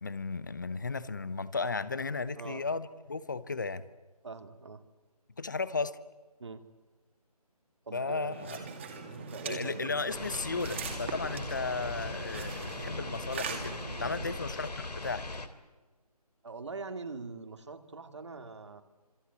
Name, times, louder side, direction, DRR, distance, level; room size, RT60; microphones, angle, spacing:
voice 1, 0.0-3.9 5.4-6.0 7.9-8.6 9.4-15.3, left 4 dB, 30° left, 0.9 m, -35 dB
voice 2, 4.2-4.8 6.4-6.7 7.9-8.7 9.1-9.9 14.1-14.4 16.4-18.8, right 4 dB, 45° right, 2.2 m, -43 dB
sound 1, 8.3-14.4, right 4 dB, 20° right, 2.4 m, -41 dB
sound 2, 10.1-15.5, left 2 dB, 90° left, 3.0 m, -40 dB
27.0 x 23.5 x 8.4 m
figure-of-eight pair, 170°, 20 cm